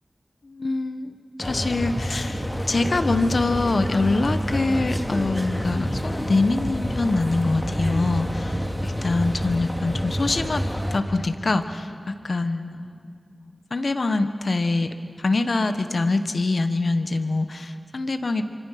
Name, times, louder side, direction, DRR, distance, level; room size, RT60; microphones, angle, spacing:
voice 1, 0.4-1.1 1.4-8.6 8.8-12.9 13.7-14.9 15.2-18.5, left 3 dB, 70° left, 9 dB, 1.3 m, -24 dB
sound 1, 1.4-11.0, equal, 10° left, 2.6 m, -28 dB
26.5 x 25.0 x 5.9 m, 2.2 s
wide cardioid pair, 60°, 0 cm